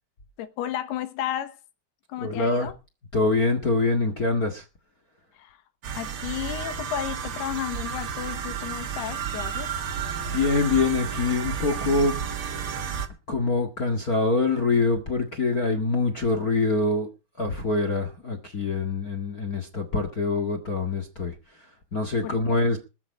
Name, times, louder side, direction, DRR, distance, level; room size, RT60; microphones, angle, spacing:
voice 1, 0.4-1.6 2.1-2.7 5.3-5.6 5.9-9.7 22.2-22.6, left 11 dB, 80° left, 3.4 m, -33 dB
voice 2, 2.2-2.7 3.1-4.6 10.2-12.2 13.3-17.1 17.4-22.8, left 3 dB, 45° left, 1.2 m, -25 dB
sound 1, 5.8-13.1, right 7 dB, 65° right, 1.3 m, -32 dB
21.0 x 7.3 x 5.4 m
omnidirectional pair, 4.6 m